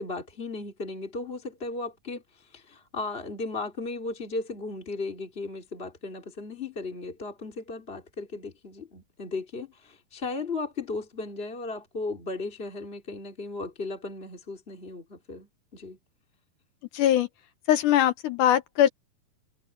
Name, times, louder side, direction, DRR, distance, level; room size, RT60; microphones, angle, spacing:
voice 1, 0.0-16.0, left 3 dB, 20° left, 2.2 m, -36 dB
voice 2, 16.9-17.3 17.7-18.9, left 11 dB, 70° left, 2.2 m, -21 dB
omnidirectional pair, 4.1 m